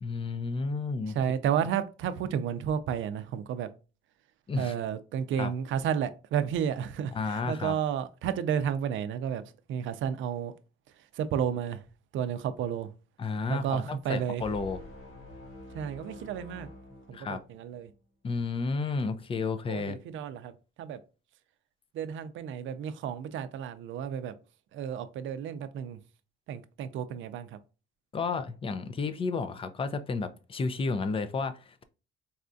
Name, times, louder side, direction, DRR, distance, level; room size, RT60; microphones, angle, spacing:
voice 1, 0.0-1.2 4.5-4.7 5.4-5.5 7.1-7.8 13.2-14.8 17.1-17.4 18.2-20.0 28.1-31.8, left 4 dB, 25° left, 0.4 m, -32 dB
voice 2, 1.1-3.7 4.6-9.4 9.7-10.5 11.1-11.8 12.1-12.9 13.5-14.4 15.7-16.7 17.1-17.9 19.7-21.0 21.9-24.3 24.7-26.0 26.5-27.6, right 8 dB, 65° right, 0.4 m, -32 dB
sound 1, 14.4-17.8, left 1 dB, 80° left, 1.8 m, -47 dB
4.1 x 2.3 x 2.5 m
cardioid pair, 120°, 21 cm